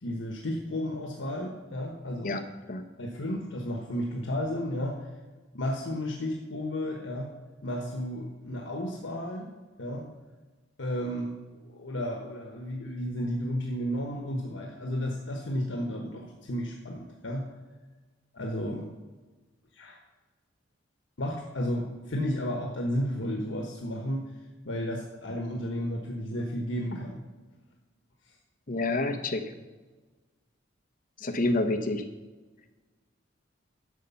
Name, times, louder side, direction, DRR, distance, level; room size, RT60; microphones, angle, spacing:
voice 1, 0.0-2.4 3.0-5.0 5.5-7.3 7.6-9.5 9.8-10.1 10.8-17.5 18.3-18.9 19.7-20.0 21.2-24.3 24.6-27.2, equal, 90° left, 1 dB, 1.2 m, -33 dB
voice 2, 28.7-29.4 31.2-32.0, left 2 dB, 45° left, 7 dB, 1.0 m, -28 dB
11.0 x 6.5 x 5.6 m, 1.3 s
head